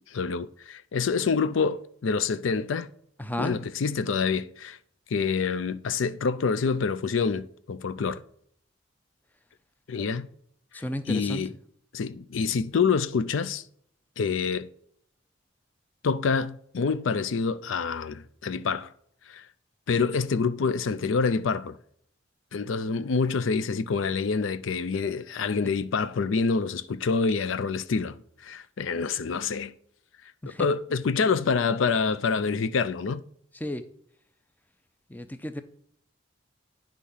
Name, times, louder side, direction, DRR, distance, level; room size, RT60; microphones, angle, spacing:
voice 1, 0.1-2.9 3.4-4.8 5.1-8.2 9.9-10.3 11.1-11.5 11.9-13.6 14.2-14.7 16.0-18.9 19.3-19.4 19.9-21.8 22.5-28.2 28.4-29.7 30.5-33.2, left 5 dB, 80° left, 0.4 m, -27 dB
voice 2, 3.2-3.6 10.7-11.4 30.4-30.7 33.6-33.8 35.1-35.6, left 1 dB, 10° left, 0.5 m, -32 dB
10.0 x 3.6 x 5.5 m
head